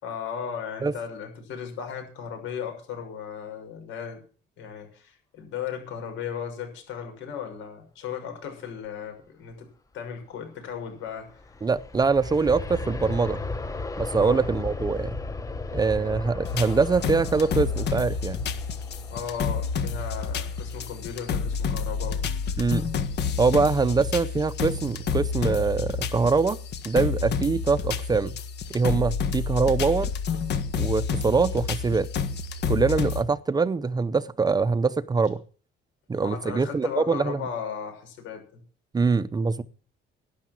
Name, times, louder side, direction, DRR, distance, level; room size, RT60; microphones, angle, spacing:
voice 1, 0.0-4.2 4.6-9.7 9.9-11.4 14.2-14.4 19.1-22.2 36.2-38.6, left 7 dB, 80° left, 6.6 m, -36 dB
Aircraft, 11.2-22.0 22.5-22.6, left 3 dB, 15° left, 1.0 m, -36 dB
voice 2, 11.6-13.4 14.0-15.2 15.7-18.5 22.6-22.9 23.4-26.6 26.8-28.3 28.7-30.1 30.8-32.1 32.7-35.4 36.1-37.4 38.9-39.6, right 4 dB, 20° right, 0.7 m, -24 dB
sound 1, 16.4-33.2, left 5 dB, 60° left, 1.6 m, -29 dB
12.0 x 10.5 x 7.6 m
cardioid pair, 145°, 20 cm